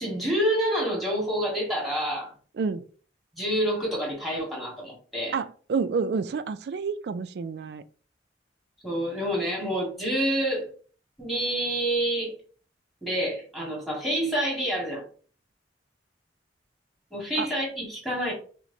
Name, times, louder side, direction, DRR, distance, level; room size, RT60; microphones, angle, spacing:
voice 1, 0.0-2.3 3.4-5.3 8.8-10.7 11.2-12.3 13.0-15.0 17.1-18.3, right 1 dB, ahead, 1.5 m, -28 dB
voice 2, 5.3-7.8 17.4-17.5, right 5 dB, 60° right, 0.3 m, -29 dB
5.8 x 2.1 x 2.7 m
head